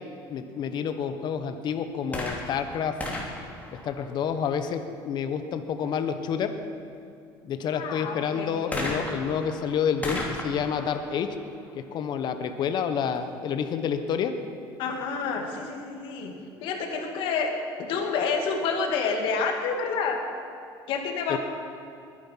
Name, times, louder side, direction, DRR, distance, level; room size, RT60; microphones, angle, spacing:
voice 1, 0.3-2.9 3.8-6.5 7.4-11.3 11.9-14.3 21.3-21.4, left 7 dB, 55° left, 8 dB, 1.2 m, -29 dB
sound 1, 2.0-4.6 8.7-12.4 13.2-13.3, left 2 dB, 15° left, 2.9 m, -36 dB
voice 2, 7.7-8.6 14.8-17.5 17.8-20.2 20.9-21.4, left 5 dB, 70° left, 3 dB, 2.4 m, -29 dB
21.0 x 10.0 x 5.8 m, 2.5 s
cardioid pair, 115°, 9 cm